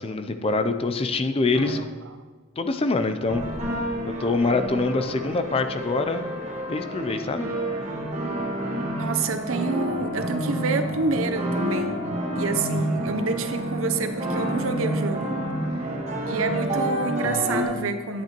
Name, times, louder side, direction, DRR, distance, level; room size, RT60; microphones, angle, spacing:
voice 1, 0.0-1.8 2.6-3.4 4.0-6.3 6.7-7.5, left 3 dB, 30° left, 8 dB, 0.4 m, -25 dB
sound 1, 1.5-1.7 3.3-17.6, equal, 35° right, 1.4 m, -29 dB
voice 2, 9.0-12.0 12.3-15.4 16.3-18.2, right 4 dB, 85° right, 8 dB, 0.7 m, -28 dB
10.0 x 8.8 x 3.0 m, 1.4 s
head